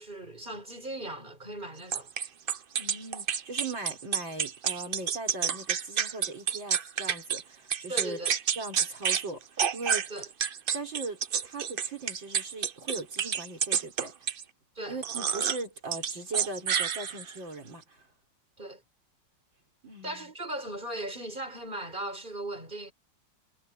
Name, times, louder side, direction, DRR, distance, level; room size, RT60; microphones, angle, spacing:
voice 1, 0.0-2.1 7.9-8.4 10.1-10.3 14.8-15.0 18.6-18.8 20.0-22.9, right 1 dB, 25° right, 6.1 m, -38 dB
sound 1, 1.9-7.4 7.7-9.3 9.6-14.4 15.0-15.6 15.9-17.4, right 7 dB, 60° right, 0.5 m, -29 dB
voice 2, 2.8-8.2 8.6-10.1 10.7-14.3 14.9-18.1 19.8-20.3, right 2 dB, 85° right, 5.7 m, -39 dB
omnidirectional pair, 2.0 m